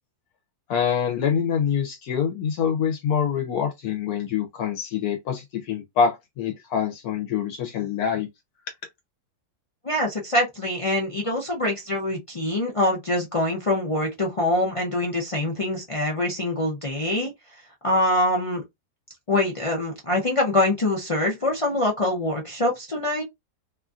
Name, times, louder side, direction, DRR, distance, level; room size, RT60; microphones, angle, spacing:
voice 1, 0.7-8.3, left 7 dB, 75° left, 1.1 m, -25 dB
voice 2, 9.8-17.3 17.8-18.6 19.3-23.2, left 1 dB, 55° left, 0.3 m, -24 dB
3.0 x 2.4 x 2.4 m
omnidirectional pair, 1.6 m